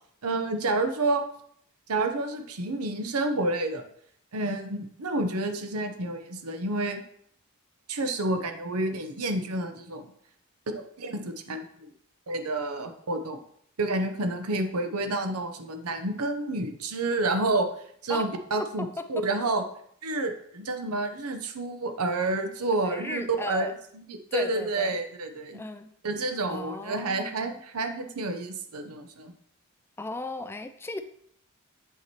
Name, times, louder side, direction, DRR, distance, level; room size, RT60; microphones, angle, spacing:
voice 1, 0.2-1.2 1.9-3.8 4.3-7.0 7.9-10.1 10.7-11.9 12.3-13.4 13.8-17.7 18.0-19.6 20.0-23.7 23.9-25.6 26.0-29.3, right 2 dB, 90° right, 7 dB, 0.8 m, -29 dB
voice 2, 22.8-23.7 24.3-25.0 25.5-25.9 26.5-27.6 30.0-31.0, left 2 dB, 10° left, 8 dB, 0.3 m, -36 dB
7.8 x 5.7 x 2.9 m, 0.66 s
head